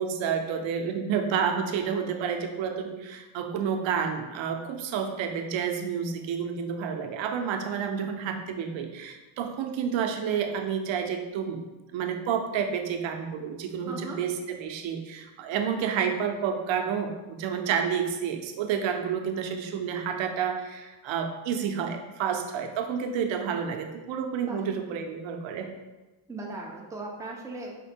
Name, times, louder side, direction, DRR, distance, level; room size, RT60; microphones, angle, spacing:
voice 1, 0.0-11.6 11.9-25.7, right 7 dB, 70° right, 5 dB, 0.6 m, -30 dB
voice 2, 13.9-14.2 24.4-24.6 26.3-27.7, right 2 dB, 5° right, -2 dB, 0.4 m, -37 dB
5.1 x 2.1 x 4.3 m, 1.1 s
cardioid pair, 160°, 49 cm